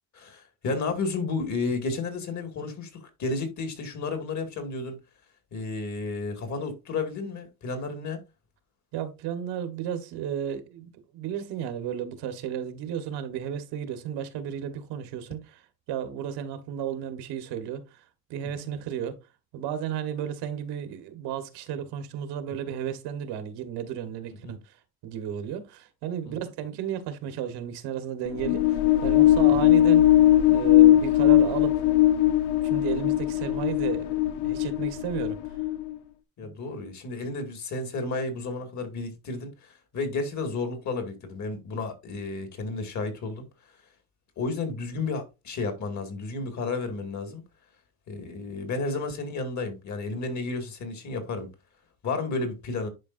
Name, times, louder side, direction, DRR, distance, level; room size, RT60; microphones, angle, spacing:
voice 1, 0.1-5.0 5.5-8.2 18.4-18.7 24.4-24.6 26.3-26.4 36.4-43.4 44.4-47.4 48.1-51.5 52.0-52.9, left 3 dB, 45° left, 2.2 m, -32 dB
voice 2, 8.9-18.0 18.3-19.2 19.5-30.1 30.5-32.1 32.6-34.1 34.4-35.4 36.4-36.5, right 9 dB, 85° right, 1.5 m, -33 dB
sound 1, 28.3-35.9, left 13 dB, 80° left, 0.9 m, -20 dB
10.5 x 4.8 x 2.6 m
cardioid pair, 140°, 39 cm